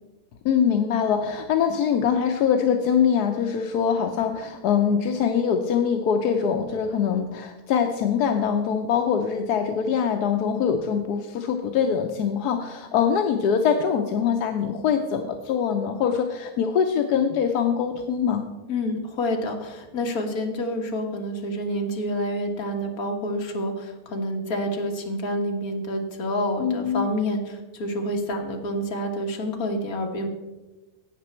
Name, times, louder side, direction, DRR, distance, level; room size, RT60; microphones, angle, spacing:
voice 1, 0.4-18.5 26.6-27.1, left 7 dB, 85° left, 5 dB, 1.3 m, -23 dB
voice 2, 18.7-30.3, equal, 70° left, 2 dB, 1.8 m, -28 dB
17.0 x 6.1 x 4.3 m, 1.1 s
omnidirectional pair, 1.6 m